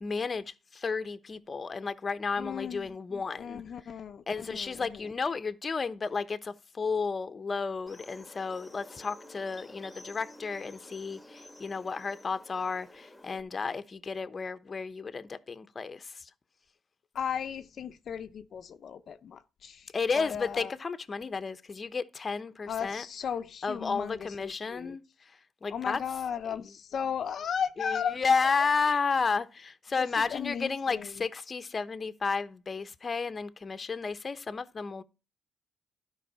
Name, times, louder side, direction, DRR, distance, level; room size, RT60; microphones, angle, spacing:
voice 1, 0.0-3.6 4.3-16.3 19.9-23.0 23.6-25.0 25.6-26.0 27.8-35.0, left 4 dB, 35° left, 1.0 m, -32 dB
voice 2, 2.4-5.0 17.1-19.9 20.2-20.7 22.7-25.0 25.7-28.6 28.9-29.0 30.0-31.2, left 7 dB, 55° left, 0.8 m, -36 dB
sound 1, 7.9-13.4, left 1 dB, 5° left, 1.7 m, -51 dB
12.5 x 5.5 x 5.5 m
cardioid pair, 90°, 0 cm